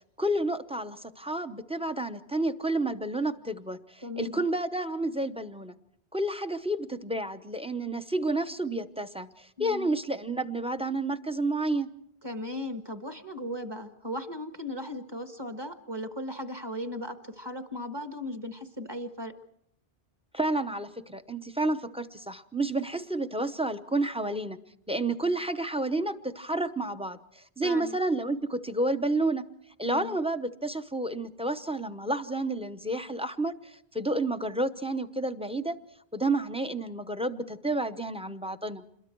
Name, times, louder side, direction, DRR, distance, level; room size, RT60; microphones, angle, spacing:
voice 1, 0.2-5.7 6.1-11.9 20.3-24.6 24.9-29.4 29.8-35.8 36.1-38.8, right 2 dB, 5° right, 10 dB, 0.7 m, -30 dB
voice 2, 4.0-4.4 9.6-9.9 12.2-19.3 27.6-28.0 29.8-30.2, left 1 dB, 25° right, 7 dB, 1.5 m, -37 dB
27.5 x 22.0 x 4.6 m, 0.73 s
omnidirectional pair, 1.0 m